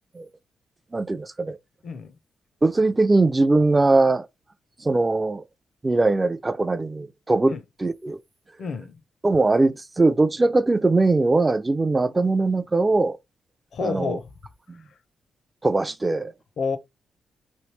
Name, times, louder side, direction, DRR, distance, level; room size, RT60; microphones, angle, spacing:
voice 1, 0.9-1.6 2.6-4.3 4.8-5.4 5.8-8.2 9.2-13.2 13.8-14.2 14.7-14.8 15.6-16.3, right 2 dB, 20° right, 0.3 m, -21 dB
voice 2, 8.6-8.9 13.7-14.3 16.6-16.8, left 5 dB, 65° left, 0.6 m, -29 dB
3.1 x 2.7 x 3.1 m
cardioid pair, 80°, 0 cm